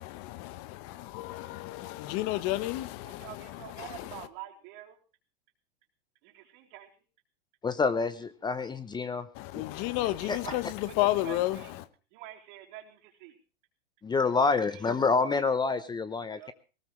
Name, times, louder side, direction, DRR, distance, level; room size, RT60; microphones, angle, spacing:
voice 1, 0.0-4.3 9.3-11.9, left 16 dB, 50° left, 1.0 m, -32 dB
voice 2, 3.0-5.0 6.2-6.9 9.9-11.7 12.1-13.4 14.6-14.9 16.3-16.5, right 13 dB, 55° right, 3.6 m, -47 dB
voice 3, 7.6-9.3 10.3-10.4 14.0-16.5, left 4 dB, 15° left, 0.8 m, -27 dB
19.0 x 18.5 x 3.2 m
hypercardioid pair, 115°, 29 cm